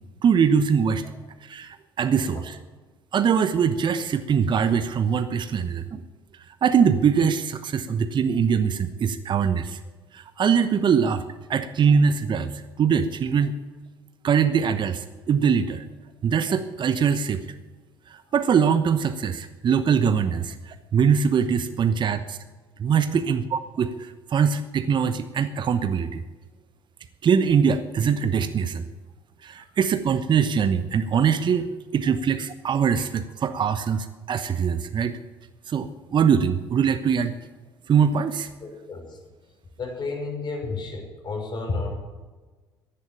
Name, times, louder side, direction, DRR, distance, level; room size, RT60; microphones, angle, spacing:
voice 1, 0.2-1.0 1.4-2.6 3.1-6.0 6.6-9.8 10.1-11.2 11.5-13.5 14.2-15.8 16.2-17.4 18.1-22.4 22.8-26.2 27.2-28.9 29.4-35.2 35.7-37.3 37.9-38.5, right 7 dB, 40° right, 11 dB, 1.0 m, -22 dB
voice 2, 38.6-39.2 39.8-41.9, left 3 dB, 40° left, 2 dB, 5.8 m, -31 dB
14.5 x 11.0 x 8.9 m, 1.3 s
figure-of-eight pair, 55°, 12 cm